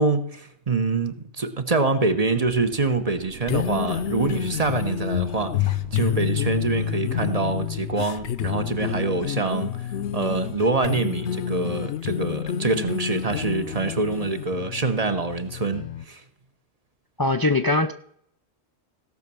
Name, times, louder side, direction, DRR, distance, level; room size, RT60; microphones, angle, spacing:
voice 1, 0.0-16.2, right 3 dB, 35° right, 9 dB, 1.0 m, -25 dB
sound 1, 2.4-8.0, right 8 dB, 90° right, 1.1 m, -43 dB
sound 2, 3.4-16.0, left 10 dB, 75° left, 1.0 m, -29 dB
voice 2, 17.2-17.9, left 2 dB, 25° left, 8 dB, 0.5 m, -22 dB
16.5 x 6.1 x 6.9 m, 0.67 s
omnidirectional pair, 1.2 m